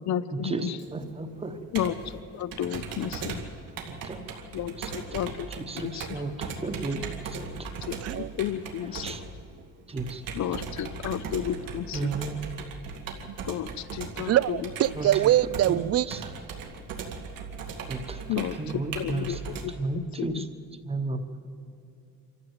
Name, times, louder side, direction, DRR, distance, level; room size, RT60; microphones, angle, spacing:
voice 1, 0.0-0.8 1.7-3.5 4.5-5.5 5.7-6.2 7.8-9.1 10.3-12.1 13.5-14.7 18.3-20.5, left 10 dB, 55° left, 14 dB, 0.7 m, -32 dB
Computer keyboard, 0.8-19.6, right 5 dB, 90° right, 2.3 m, -38 dB
voice 2, 0.9-1.5 4.0-4.2 5.7-7.0 9.0-9.2 9.9-10.2 11.9-12.4 15.0-15.1 17.9-18.2 18.6-19.2 19.8-20.4 20.9-21.2, right 3 dB, 20° right, 8 dB, 1.1 m, -32 dB
voice 3, 8.0-8.3 13.3-13.4 14.2-16.1, right 12 dB, 50° right, 20 dB, 0.4 m, -23 dB
26.0 x 14.0 x 8.0 m, 2.4 s
cardioid pair, 155°, 33 cm